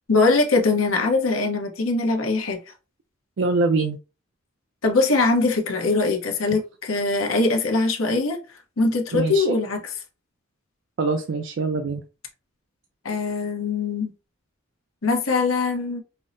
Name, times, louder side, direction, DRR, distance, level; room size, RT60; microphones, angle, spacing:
voice 1, 0.1-2.6 4.8-8.4 8.8-9.8 13.0-14.1 15.0-16.0, left 3 dB, 80° left, 0.9 m, -22 dB
voice 2, 3.4-4.0 9.1-9.6 11.0-12.0, right 3 dB, 65° right, 0.4 m, -23 dB
5.4 x 2.1 x 2.5 m
head